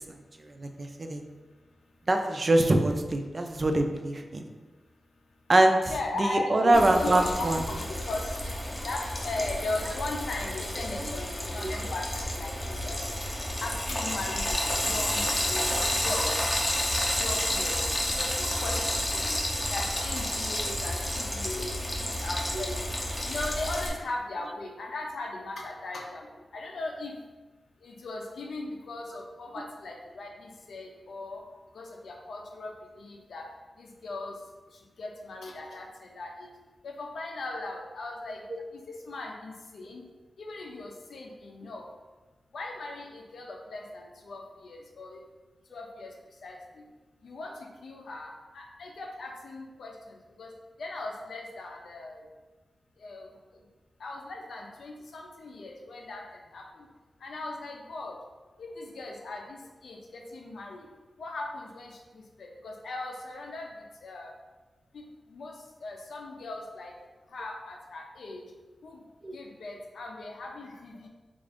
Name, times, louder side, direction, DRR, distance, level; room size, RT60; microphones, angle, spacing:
voice 1, 0.6-1.2 2.1-4.4 5.5-5.9 6.2-7.6 22.5-22.7 69.2-69.4, right 1 dB, 35° right, 4 dB, 0.3 m, -24 dB
voice 2, 5.9-7.3 7.6-8.4 8.8-13.0 13.6-15.7 16.0-16.5 17.1-19.4 19.7-22.9 23.2-26.3 26.5-27.2 27.8-31.4 31.7-33.5 33.8-34.4 34.7-36.5 36.8-38.4 38.7-40.0 40.4-41.9 42.5-45.2 45.7-46.8 47.2-50.5 50.8-52.3 53.0-53.6 54.0-56.9 57.2-58.2 58.6-60.9 61.2-64.3 64.9-66.9 67.3-68.4 68.8-69.0 69.3-71.1, left 2 dB, 80° left, 1 dB, 0.5 m, -38 dB
Frying (food), 6.7-23.9, left 1 dB, 20° left, 0.5 m, -30 dB
3.6 x 2.5 x 3.4 m, 1.2 s
wide cardioid pair, 135°, 0 cm